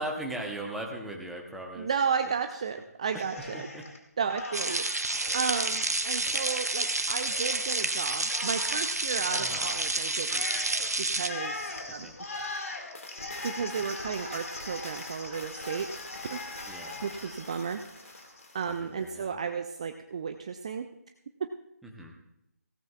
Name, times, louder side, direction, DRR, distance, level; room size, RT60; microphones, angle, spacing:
voice 1, 0.0-1.9 3.1-3.2 3.5-3.8 9.4-9.7 11.9-12.1 16.7-17.2 18.7-19.4 21.8-22.1, right 1 dB, ahead, -1 dB, 0.8 m, -38 dB
voice 2, 1.8-3.7 4.2-10.4 11.0-11.6 11.9-12.1 13.4-15.9 16.2-16.5 17.0-18.2 18.5-20.9, right 6 dB, 25° right, 7 dB, 0.4 m, -33 dB
Cheering, 3.1-4.0 4.3-18.8, left 2 dB, 55° left, 1.8 m, -41 dB
sound 1, 4.5-11.3, right 2 dB, 70° right, 1.0 m, -30 dB
16.5 x 15.5 x 2.3 m, 0.83 s
figure-of-eight pair, 155°, 9 cm